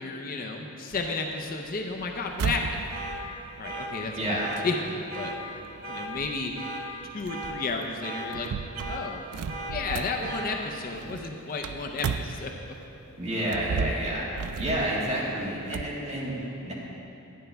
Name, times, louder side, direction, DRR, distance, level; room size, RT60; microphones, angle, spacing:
voice 1, 0.0-2.8 3.6-5.3 5.9-6.5 7.1-8.5 8.9-9.2 9.7-12.5, left 3 dB, 40° left, 2 dB, 0.6 m, -32 dB
sound 1, 0.9-12.9 13.4-16.0, right 6 dB, 85° right, 0.3 m, -36 dB
sound 2, 2.9-3.2 3.6-3.9 4.4-4.6 5.1-5.4 5.8-6.1 6.6-6.8 7.3-7.6 8.0-8.3 8.7-9.0 9.5-9.7 10.2-10.5, right 2 dB, 65° right, 1.5 m, -36 dB
voice 2, 4.2-4.5 13.2-14.3 14.6-16.7, right 1 dB, 30° right, -6 dB, 2.0 m, -29 dB
11.0 x 8.9 x 3.4 m, 2.9 s
head